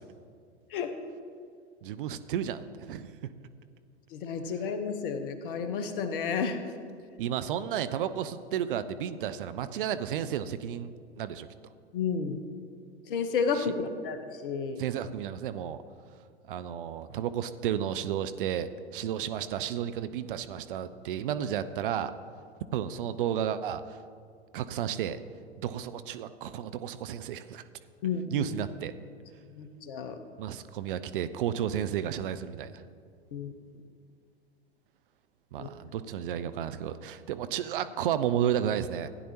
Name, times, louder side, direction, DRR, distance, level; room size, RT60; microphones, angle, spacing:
voice 1, 1.8-3.2 7.2-10.9 11.2-11.5 13.5-13.7 14.8-15.8 16.5-22.1 22.7-24.0 24.5-25.2 25.6-27.6 28.3-28.9 30.4-32.8 35.5-39.1, right 9 dB, 50° right, 12 dB, 0.6 m, -32 dB
voice 2, 4.1-6.6 11.9-12.4 13.1-14.8 28.0-28.5 29.5-30.1 33.3-33.5 35.6-35.7, left 5 dB, 50° left, 8 dB, 1.1 m, -31 dB
15.5 x 10.0 x 2.9 m, 2.2 s
figure-of-eight pair, 95°, 33 cm